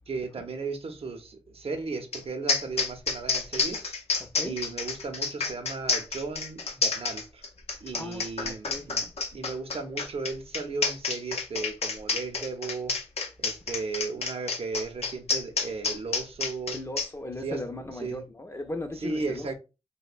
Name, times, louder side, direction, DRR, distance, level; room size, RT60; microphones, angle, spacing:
voice 1, 0.1-3.9 4.4-7.4 7.8-12.9 13.4-16.8 17.4-17.6 18.0-18.3 19.0-19.5, right 4 dB, 65° right, 0.6 m, -35 dB
sound 1, 2.1-2.2 2.5-17.1, left 4 dB, 75° left, 0.5 m, -29 dB
voice 2, 4.2-4.6 7.9-8.9 13.7-13.8 16.7-19.5, left 1 dB, 25° left, 0.5 m, -37 dB
2.8 x 2.1 x 2.4 m
cardioid pair, 45°, 11 cm